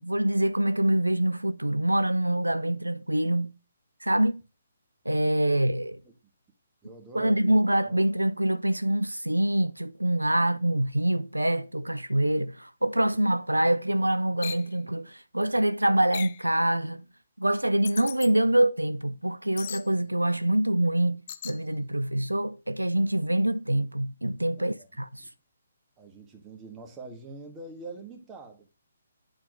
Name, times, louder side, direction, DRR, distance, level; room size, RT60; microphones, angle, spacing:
voice 1, 0.0-3.5 4.0-4.4 5.1-6.0 7.1-17.0 17.4-25.3, right 1 dB, 90° right, 0.4 m, -25 dB
voice 2, 6.8-8.0 21.8-21.9 24.6-24.9 25.2-25.3 26.0-28.7, right 3 dB, 15° right, 1.6 m, -45 dB
sound 1, 14.4-14.7 16.1-16.4 17.8-18.3 19.6-19.9 21.3-21.6, left 9 dB, 40° left, 0.4 m, -37 dB
8.8 x 4.2 x 3.3 m
figure-of-eight pair, 135°, 0 cm